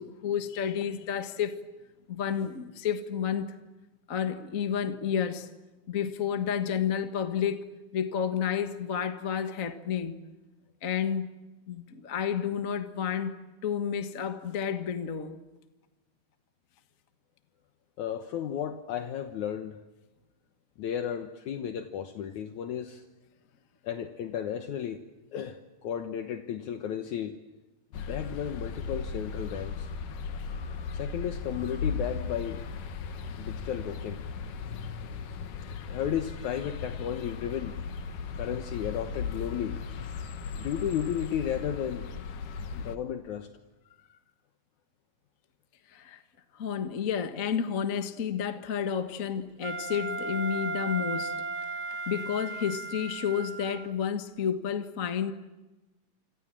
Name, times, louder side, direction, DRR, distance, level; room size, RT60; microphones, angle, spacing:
voice 1, 0.0-1.5 2.1-3.5 4.1-5.5 5.9-7.6 7.9-10.2 10.8-11.3 11.7-15.4 45.9-46.2 46.5-51.4 52.1-55.3, left 8 dB, 45° left, 1.1 m, -31 dB
voice 2, 18.0-19.8 20.8-23.0 23.8-25.0 25.3-27.4 27.9-29.9 30.9-32.6 33.4-34.2 35.9-37.8 38.3-39.8 40.6-42.1 42.7-43.5, left 9 dB, 70° left, 2.5 m, -34 dB
sound 1, 27.9-43.0, left 5 dB, 90° left, 3.1 m, -37 dB
Wind instrument woodwind instrument, 49.6-53.9, right 3 dB, 45° right, 2.1 m, -35 dB
28.5 x 26.5 x 7.5 m
omnidirectional pair, 3.6 m